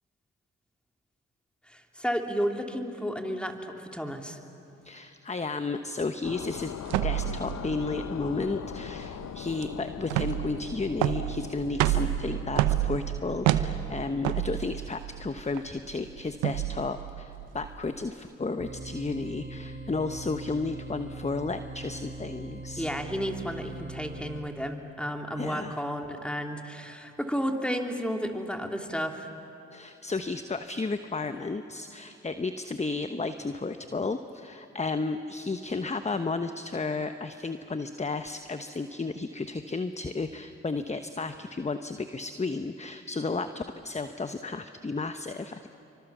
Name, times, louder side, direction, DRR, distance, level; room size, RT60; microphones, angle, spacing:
voice 1, 1.7-4.4 22.8-29.3, equal, 5° left, 3 dB, 3.1 m, -32 dB
voice 2, 4.8-6.7 7.0-22.9 25.4-25.8 29.7-45.7, left 3 dB, 20° left, 9 dB, 1.1 m, -33 dB
sound 1, 6.2-13.3, left 9 dB, 65° left, 0.9 m, -41 dB
sound 2, 6.9-18.1, right 14 dB, 85° right, 0.8 m, -30 dB
Shepard Note C, 18.6-24.4, right 2 dB, 45° right, 4.0 m, -41 dB
28.5 x 24.5 x 7.3 m, 2.7 s
hypercardioid pair, 45°, 30 cm